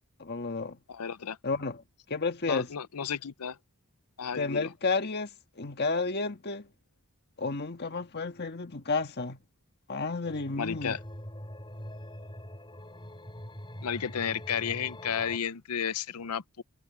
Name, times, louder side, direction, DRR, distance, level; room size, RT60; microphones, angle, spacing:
voice 1, 0.2-0.8 1.4-1.8 2.1-2.7 4.4-5.3 5.6-6.7 7.4-9.4 9.9-11.0, left 3 dB, 50° left, 1.7 m, -31 dB
voice 2, 0.9-1.4 2.4-3.6 4.2-4.7 10.6-11.0 13.8-16.6, left 7 dB, 90° left, 0.7 m, -33 dB
sound 1, 10.2-15.4, left 1 dB, 20° left, 4.3 m, -43 dB
head